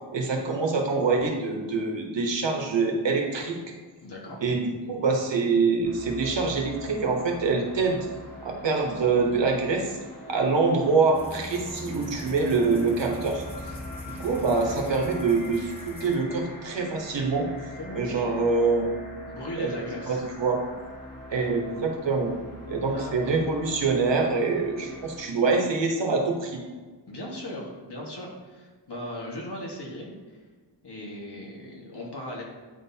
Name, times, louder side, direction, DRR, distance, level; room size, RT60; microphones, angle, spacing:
voice 1, 0.1-3.6 4.4-8.1 8.4-10.0 10.3-13.4 14.1-17.5 17.9-18.9 19.6-20.6 21.3-22.3 22.7-26.6, right 4 dB, 75° right, 1 dB, 1.1 m, -25 dB
voice 2, 4.0-4.4 17.8-18.3 19.3-20.2 22.9-23.3 27.1-30.4 30.8-32.4, left 1 dB, 65° left, -2 dB, 1.5 m, -38 dB
sound 1, 5.8-25.2, left 1 dB, 45° left, 1.6 m, -43 dB
sound 2, 11.1-16.2, left 1 dB, 5° right, 1.4 m, -42 dB
9.0 x 4.0 x 2.8 m, 1.4 s
wide cardioid pair, 95°, 44 cm